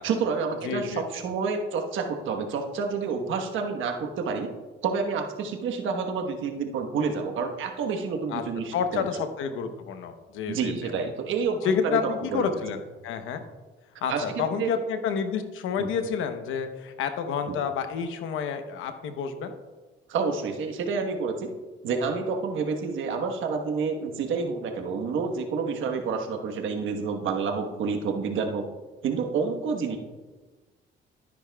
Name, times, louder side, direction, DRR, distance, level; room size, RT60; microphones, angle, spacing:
voice 1, 0.0-4.5 4.8-9.1 10.5-12.4 14.1-14.7 15.8-15.9 17.5-17.6 20.1-21.5 21.8-28.7 29.0-30.0, right 5 dB, 80° right, 4 dB, 1.3 m, -29 dB
voice 2, 0.6-1.0 8.3-8.4 8.7-10.9 11.6-13.4 14.0-19.6, left 6 dB, 90° left, 7 dB, 0.9 m, -29 dB
13.0 x 10.0 x 2.3 m, 1.3 s
cardioid pair, 90°, 20 cm